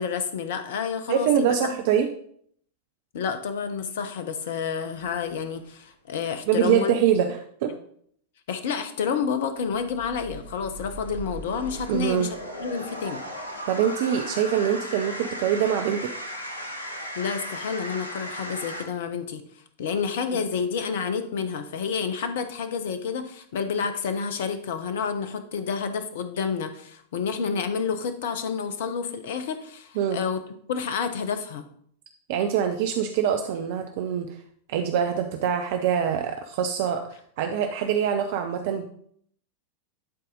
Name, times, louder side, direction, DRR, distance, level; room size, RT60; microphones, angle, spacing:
voice 1, 0.0-1.7 3.1-7.0 7.7-7.8 8.5-13.2 17.1-19.4 19.8-30.4 30.7-31.6, left 6 dB, 55° left, 10 dB, 0.9 m, -29 dB
voice 2, 1.1-2.1 6.5-7.3 7.6-7.7 11.9-12.3 13.7-16.1 30.0-30.2 32.3-34.3 34.7-37.0 37.4-38.9, right 9 dB, 50° right, 6 dB, 0.6 m, -24 dB
sound 1, 4.9-5.7 9.6-18.9, equal, 80° left, 1.2 m, -37 dB
11.0 x 4.1 x 4.0 m, 0.64 s
figure-of-eight pair, 90°, 0 cm